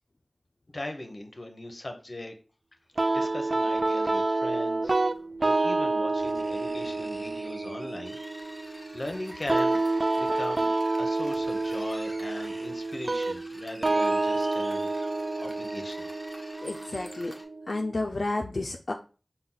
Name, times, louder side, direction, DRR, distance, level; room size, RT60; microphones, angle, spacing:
voice 1, 0.7-2.3 3.1-5.0 5.4-8.2 8.6-9.8 10.2-10.7 11.0-14.9 15.4-16.1, left 1 dB, 50° left, 5 dB, 0.8 m, -39 dB
sound 1, 3.0-17.9, right 2 dB, 60° right, 0.3 m, -28 dB
sound 2, 3.8-3.9 5.3-5.4 6.2-8.6 9.9-10.0 10.6-10.7 11.0-15.4 15.8-15.9, right 1 dB, 40° right, 1.1 m, -49 dB
sound 3, 8.0-17.4, equal, 15° left, 1.2 m, -48 dB
voice 2, 16.6-17.3 17.7-18.9, left 2 dB, 75° left, 2 dB, 0.4 m, -31 dB
5.5 x 2.2 x 3.8 m, 0.36 s
wide cardioid pair, 55°, 0 cm